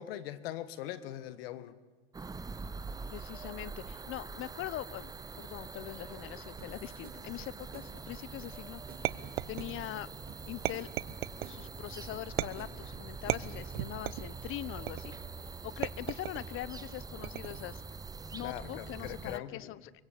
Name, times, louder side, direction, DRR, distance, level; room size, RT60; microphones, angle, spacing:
voice 1, 0.0-1.7 18.4-19.7, left 12 dB, 70° left, 14 dB, 1.9 m, -41 dB
sound 1, 2.1-19.4, right 4 dB, 10° right, 0.8 m, -44 dB
voice 2, 3.1-9.1 9.5-10.1 10.5-10.9 11.5-15.2 15.6-17.8 18.3-19.9, left 15 dB, 40° left, 19 dB, 1.1 m, -42 dB
sound 2, 6.6-14.0, right 5 dB, 30° right, 4.3 m, -54 dB
sound 3, 9.0-10.0 10.6-11.6 12.4-12.8 13.3-14.3 14.9-15.3 15.8-16.5 17.2-17.7, right 16 dB, 70° right, 1.0 m, -36 dB
24.0 x 23.5 x 8.6 m, 1.3 s
hypercardioid pair, 100°, 31 cm